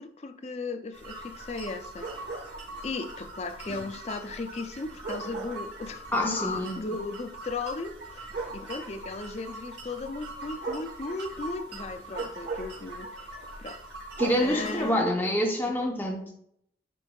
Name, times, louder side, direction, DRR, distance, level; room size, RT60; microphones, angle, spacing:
voice 1, 0.0-2.2 2.8-13.3 13.6-13.8 14.4-15.2, left 3 dB, 35° left, 0.4 m, -36 dB
sound 1, 0.9-14.9, right 3 dB, 75° right, 2.6 m, -39 dB
voice 2, 6.1-6.8 14.2-16.3, left 1 dB, 10° left, 0.8 m, -27 dB
9.9 x 4.5 x 2.3 m
head